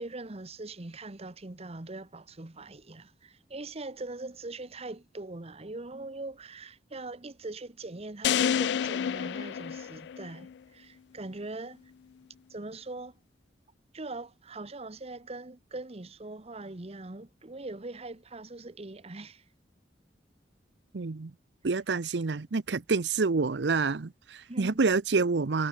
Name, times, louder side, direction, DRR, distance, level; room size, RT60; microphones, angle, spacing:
voice 1, 0.0-11.8 12.5-13.1 13.9-19.4 24.5-24.8, right 2 dB, 35° right, 1.1 m, -41 dB
sound 1, 8.2-10.5, left 8 dB, 70° left, 0.3 m, -29 dB
voice 2, 20.9-21.3 21.6-25.7, right 4 dB, 75° right, 0.7 m, -27 dB
head